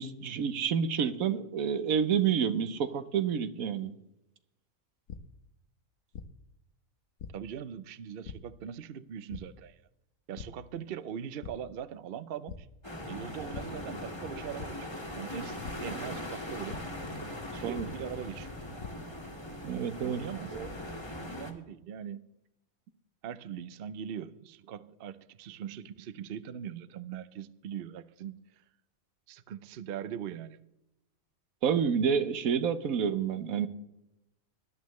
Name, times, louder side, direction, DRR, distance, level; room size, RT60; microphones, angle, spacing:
voice 1, 0.0-3.9 15.9-16.2 17.6-17.9 19.6-20.2 20.5-20.7 31.6-33.7, right 7 dB, 85° right, 11 dB, 1.3 m, -29 dB
sound 1, 5.1-5.2 6.1-6.2 7.2-7.3 8.2-8.3 9.3-9.4 10.3-10.4 10.9-11.1 11.4-11.5 12.5-12.6 13.5-13.6 14.6-14.7 15.6-15.7 16.7-16.8 17.7-17.8 18.5-18.9, left 8 dB, 70° left, 1.2 m, -41 dB
voice 2, 7.3-9.8 10.3-12.7 13.0-16.8 17.5-18.5 20.0-20.7 21.1-22.3 23.2-28.4 29.3-30.6, right 9 dB, 55° right, 14 dB, 0.7 m, -41 dB
sound 2, 12.8-21.5, left 1 dB, 20° left, 1.7 m, -40 dB
20.0 x 11.5 x 3.1 m, 0.87 s
omnidirectional pair, 1.4 m